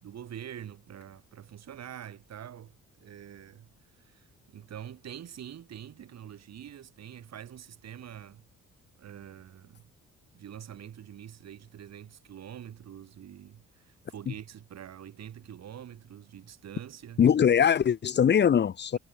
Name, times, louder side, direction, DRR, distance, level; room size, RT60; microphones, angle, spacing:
voice 1, 0.0-3.7 4.0-8.5 9.0-9.9 10.3-17.2, right 10 dB, 60° right, 2.3 m, -45 dB
voice 2, 17.2-19.0, left 8 dB, 35° left, 0.6 m, -22 dB
cardioid pair, 90°, 30 cm